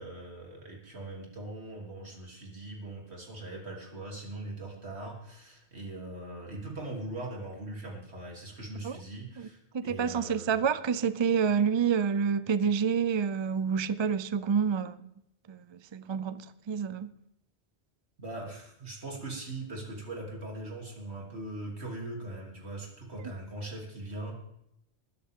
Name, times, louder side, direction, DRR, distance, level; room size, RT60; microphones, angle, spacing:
voice 1, 0.0-10.7 18.2-24.3, right 2 dB, 70° right, -1 dB, 3.5 m, -41 dB
voice 2, 9.7-15.1 15.5-17.1, right 6 dB, 40° right, 14 dB, 0.4 m, -28 dB
21.0 x 10.5 x 3.7 m, 0.78 s
omnidirectional pair, 1.1 m